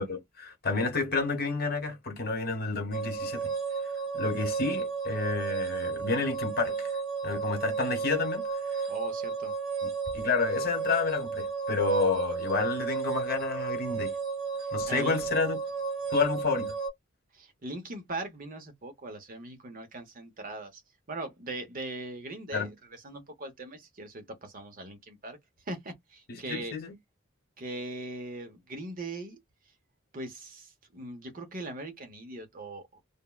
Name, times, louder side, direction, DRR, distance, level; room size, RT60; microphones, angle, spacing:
voice 1, 0.0-3.5 4.1-6.9 7.2-8.4 8.7-8.8 9.8-9.9 10.1-14.1 14.7-15.6 16.1-16.7 22.5-22.7 26.3-26.9, left 4 dB, 50° left, 1.0 m, -30 dB
sound 1, 2.9-16.9, right 5 dB, 85° right, 1.3 m, -33 dB
voice 2, 8.9-9.5 14.9-15.2 17.3-20.8 21.1-22.7 23.0-25.4 25.7-26.8 27.6-29.4 30.1-33.0, right 2 dB, 45° right, 0.8 m, -40 dB
3.4 x 2.1 x 2.2 m
head